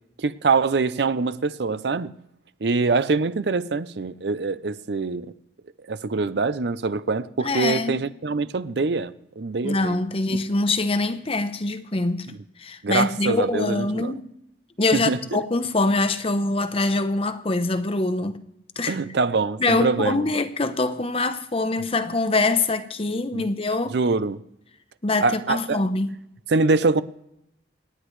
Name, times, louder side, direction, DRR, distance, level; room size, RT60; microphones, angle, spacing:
voice 1, 0.2-2.1 2.6-5.3 5.9-10.0 12.3-12.4 12.8-14.1 14.9-15.2 18.9-20.3 23.3-23.5 23.9-24.4 25.2-25.8 26.5-27.0, right 4 dB, 65° right, 0.6 m, -24 dB
voice 2, 7.4-8.0 9.6-12.3 12.6-14.2 14.8-18.4 18.8-19.0 19.6-24.0 25.0-26.1, left 2 dB, 30° left, 0.8 m, -24 dB
28.0 x 9.9 x 3.2 m
head